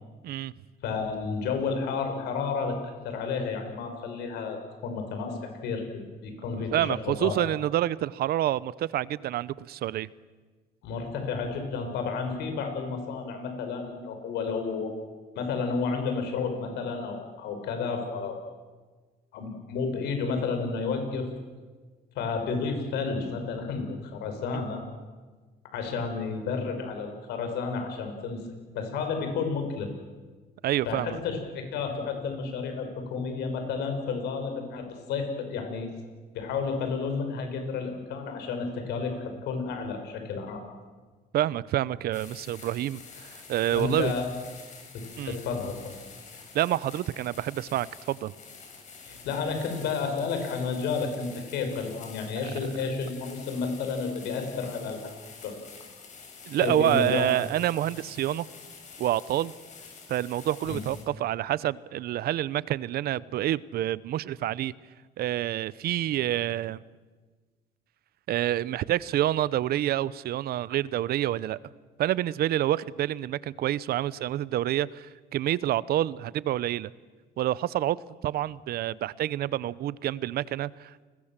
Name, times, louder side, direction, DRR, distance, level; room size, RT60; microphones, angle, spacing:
voice 1, 0.8-5.8 6.2-7.4 10.8-14.9 15.3-18.4 19.3-21.3 22.1-24.8 25.7-28.5 28.7-29.9 30.9-35.9 36.3-40.6 43.7-44.3 44.9-45.8 49.0-55.1 55.4-55.5 56.6-57.3 60.6-60.8, left 5 dB, 80° left, 6.0 m, -31 dB
voice 2, 6.6-10.1 30.6-31.2 41.3-44.2 45.2-45.4 46.5-48.3 52.4-52.5 56.5-58.5 59.0-59.5 60.1-64.7 65.2-66.8 68.3-71.6 72.0-76.9 77.4-78.0 78.2-81.0, right 13 dB, 65° right, 0.8 m, -28 dB
sound 1, 42.1-61.0, left 5 dB, 45° left, 6.6 m, -48 dB
29.5 x 21.0 x 7.5 m
cardioid pair, 110°, 17 cm